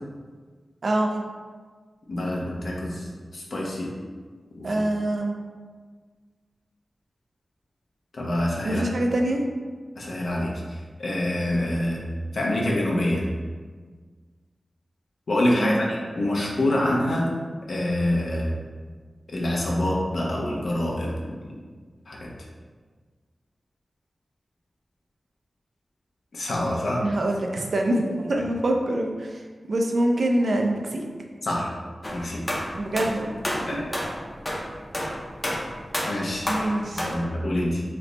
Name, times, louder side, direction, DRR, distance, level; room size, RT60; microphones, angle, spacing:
voice 1, 0.8-1.2 4.6-5.3 8.6-9.4 15.6-15.8 27.0-29.4 29.7-31.0 32.8-33.9 36.5-37.1, right 1 dB, 70° right, 2 dB, 0.4 m, -25 dB
voice 2, 2.1-3.9 4.5-4.8 8.1-8.8 10.0-12.0 12.3-13.2 15.3-17.3 17.7-18.6 19.3-21.5 22.1-22.3 26.3-27.0 31.4-31.7 32.1-32.4 33.7-34.1 36.0-36.5 36.9-37.8, left 1 dB, 75° left, -3 dB, 0.7 m, -26 dB
sound 1, 32.0-37.2, equal, 25° left, 0.6 m, -29 dB
3.3 x 2.0 x 3.9 m, 1.5 s
cardioid pair, 45°, 0 cm